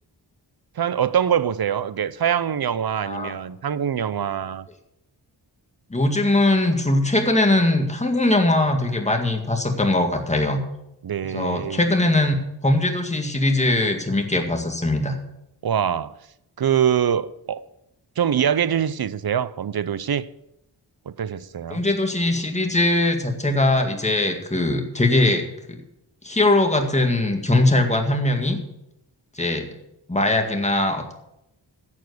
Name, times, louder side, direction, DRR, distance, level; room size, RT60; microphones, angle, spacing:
voice 1, 0.8-4.7 11.0-11.8 15.6-16.2 16.6-17.7 18.2-20.3 21.1-21.9, right 8 dB, 55° right, 0.7 m, -24 dB
voice 2, 3.0-3.3 5.9-10.6 11.2-12.3 12.6-15.2 21.7-25.5 26.2-28.6 29.3-29.7 30.1-31.1, left 2 dB, 15° left, 1.9 m, -21 dB
10.5 x 7.3 x 8.2 m
wide cardioid pair, 80°, 44 cm